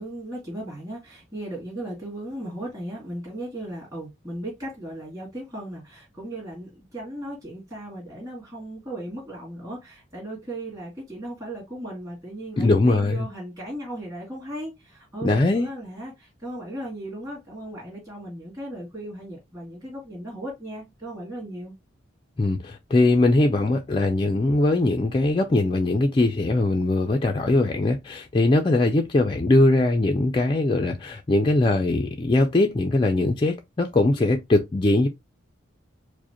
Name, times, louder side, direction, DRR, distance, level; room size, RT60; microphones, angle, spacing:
voice 1, 0.0-21.7, right 1 dB, 15° right, 2.2 m, -36 dB
voice 2, 12.6-13.3 15.2-15.7 22.4-35.1, left 2 dB, 25° left, 0.3 m, -21 dB
4.8 x 2.1 x 2.8 m
head